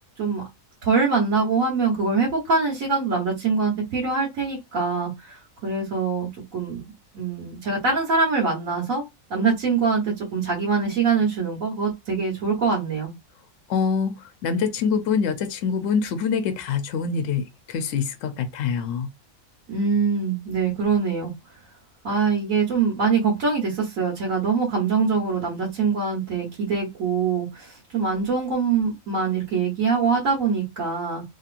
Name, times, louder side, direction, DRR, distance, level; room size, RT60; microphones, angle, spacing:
voice 1, 0.8-6.8 7.1-9.0 9.3-13.1 19.7-21.3 22.0-31.2, right 5 dB, 75° right, 1.4 m, -23 dB
voice 2, 13.7-19.1, left 6 dB, 70° left, 0.9 m, -25 dB
3.0 x 2.8 x 2.4 m
omnidirectional pair, 1.4 m